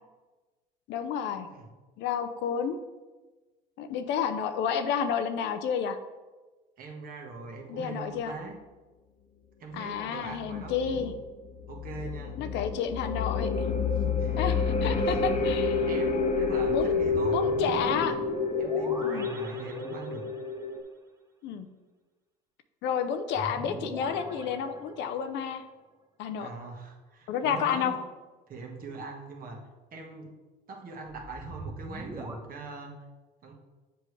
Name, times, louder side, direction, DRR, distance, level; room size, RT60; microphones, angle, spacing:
voice 1, 0.9-1.5 2.0-2.8 3.8-6.0 7.7-8.3 9.7-11.1 12.4-13.5 14.4-15.9 16.7-16.9 17.3-18.1 19.0-19.3 21.4-21.7 22.8-25.6 26.2-26.5 27.3-27.9, left 7 dB, 65° left, 9 dB, 0.6 m, -30 dB
voice 2, 6.8-8.5 9.6-11.1 11.7-12.5 13.9-14.4 15.0-15.2 15.9-18.1 18.6-20.3 26.4-28.0 28.5-29.6 29.9-30.3 30.7-32.9 33.4-33.5, right 3 dB, 50° right, 1 dB, 1.4 m, -41 dB
sound 1, 10.5-20.8, left 4 dB, 35° left, 0.9 m, -29 dB
sound 2, 16.1-20.5 23.3-25.4 31.1-32.4, right 2 dB, 15° right, 1.0 m, -41 dB
7.7 x 5.0 x 3.2 m, 1.2 s
supercardioid pair, 90°, 19 cm